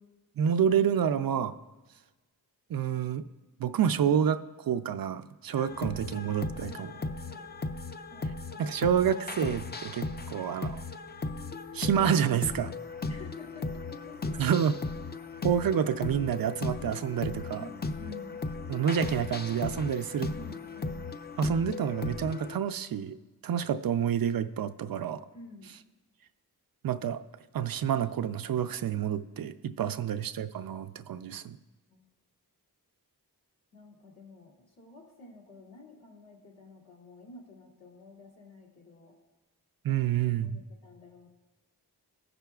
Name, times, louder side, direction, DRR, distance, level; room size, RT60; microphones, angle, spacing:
voice 1, 0.4-1.5 2.7-3.3 3.6-6.9 8.6-10.8 11.7-12.7 14.4-14.8 15.4-17.6 18.7-20.3 21.4-23.2 23.4-25.2 26.8-27.2 27.5-31.6 39.8-40.6, right 8 dB, 65° right, 11 dB, 0.5 m, -28 dB
sound 1, 5.6-22.6, left 3 dB, 25° left, 0.5 m, -37 dB
voice 2, 6.6-7.5 8.1-9.0 10.1-10.3 13.1-14.6 17.2-18.4 20.3-21.1 25.3-25.8 29.8-30.0 31.2-31.3 31.9-32.0 33.7-39.1 39.9-41.3, left 3 dB, 70° left, -4 dB, 2.1 m, -51 dB
17.5 x 5.8 x 2.3 m, 1.2 s
cardioid pair, 50°, 38 cm